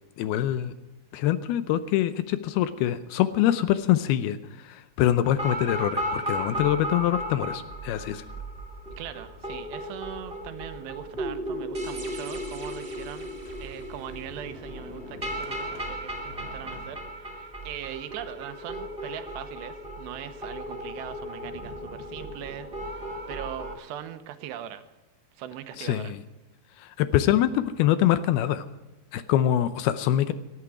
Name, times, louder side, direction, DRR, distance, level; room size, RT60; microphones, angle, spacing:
voice 1, 0.2-0.7 1.1-8.2 25.8-26.2 26.8-28.7 29.1-30.3, left 12 dB, 80° left, 12 dB, 2.4 m, -24 dB
sound 1, 5.2-23.7, equal, 70° right, 0.5 m, -35 dB
voice 2, 9.0-13.3 13.6-24.9 25.4-26.1, right 11 dB, 85° right, 10 dB, 3.1 m, -40 dB
Sliding door, 11.1-12.0 12.6-12.7 13.3-18.1, left 3 dB, 55° left, 2.8 m, -48 dB
18.5 x 13.0 x 4.9 m, 1.1 s
omnidirectional pair, 4.8 m